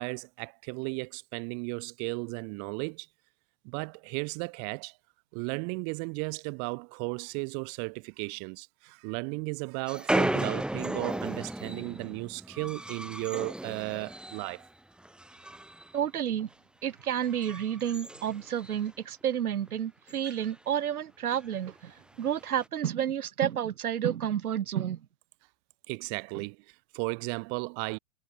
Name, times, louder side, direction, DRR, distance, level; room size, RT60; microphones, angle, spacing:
voice 1, 0.0-3.1 3.6-5.0 5.3-14.6 25.9-28.0, right 40 dB or more, 40° right, 1.2 m, -35 dB
sound 1, 9.9-14.7 15.0-16.0 16.3-16.5 17.1-19.0 19.3-19.4 19.7-19.8 20.1-20.5 21.3-21.5 22.3-22.6, right 1 dB, ahead, 1.7 m, -35 dB
voice 2, 15.9-16.5 16.8-25.0, right 9 dB, 80° right, 1.2 m, -30 dB
hypercardioid pair, 115°, 43 cm